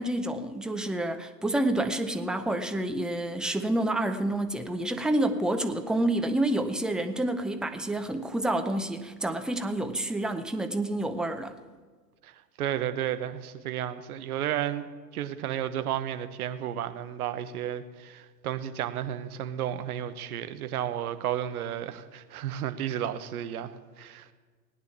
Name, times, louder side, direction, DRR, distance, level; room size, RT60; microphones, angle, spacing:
voice 1, 0.0-11.5, right 1 dB, ahead, 7 dB, 0.6 m, -28 dB
voice 2, 12.6-14.9 15.1-24.3, right 10 dB, 60° right, 10 dB, 1.2 m, -32 dB
18.0 x 9.5 x 7.1 m, 1.5 s
figure-of-eight pair, 95°, 49 cm